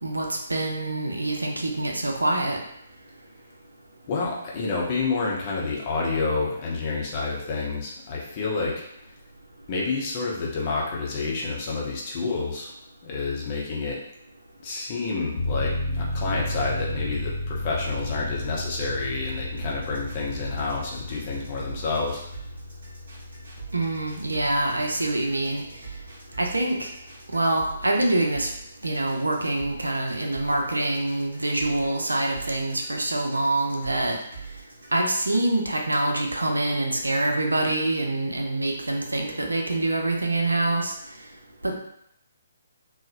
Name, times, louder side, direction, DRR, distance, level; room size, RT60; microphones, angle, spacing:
voice 1, 0.0-2.6 23.7-25.6 26.4-26.9 27.3-28.5 28.8-34.2 34.9-40.9 41.6-41.8, right 2 dB, 80° right, 1 dB, 0.4 m, -25 dB
voice 2, 4.1-8.8 9.7-12.7 13.0-14.0 14.6-22.2, left 4 dB, 35° left, -3 dB, 0.6 m, -29 dB
sound 1, 15.4-27.9 28.2-28.3, left 1 dB, 65° left, 0.7 m, -34 dB
sound 2, 19.6-35.6, right 5 dB, 55° right, 0.9 m, -43 dB
2.8 x 2.0 x 2.4 m, 0.73 s
figure-of-eight pair, 135°, 0 cm